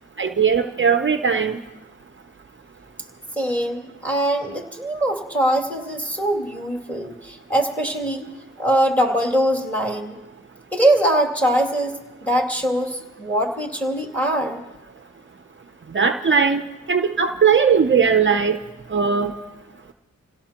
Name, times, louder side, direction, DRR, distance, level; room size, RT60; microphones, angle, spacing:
voice 1, 0.2-1.6 15.9-16.6 16.9-18.6 18.9-19.3, right 6 dB, 40° right, 7 dB, 0.7 m, -18 dB
voice 2, 3.4-8.3 8.6-10.2 10.7-11.9 12.2-14.6, right 1 dB, 5° left, 1 dB, 2.6 m, -22 dB
28.0 x 17.0 x 2.9 m, 1.1 s
cardioid pair, 65°, 32 cm